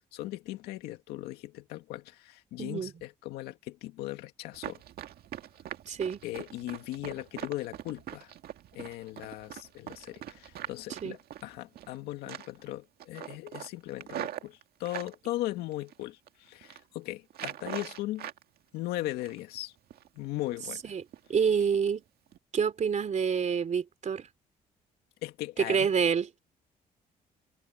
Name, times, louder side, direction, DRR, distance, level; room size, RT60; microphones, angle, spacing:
voice 1, 0.1-4.8 6.2-8.3 8.7-18.3 18.7-19.7 20.2-20.8 25.2-25.9, left 16 dB, 90° left, 2.1 m, -38 dB
voice 2, 2.6-2.9 5.9-6.2 11.0-11.2 20.8-21.0 21.3-22.0 22.5-24.3 25.6-26.3, right 6 dB, 50° right, 3.2 m, -27 dB
Run, 4.5-12.0 12.3-12.7 13.0-15.1 15.7-16.3 16.6-16.8 17.3-18.4 18.8-19.6 19.9-20.1 20.5-20.8 21.1-21.3 21.7-21.9 22.3-22.4, right 11 dB, 75° right, 2.0 m, -42 dB
supercardioid pair, 70°, 16 cm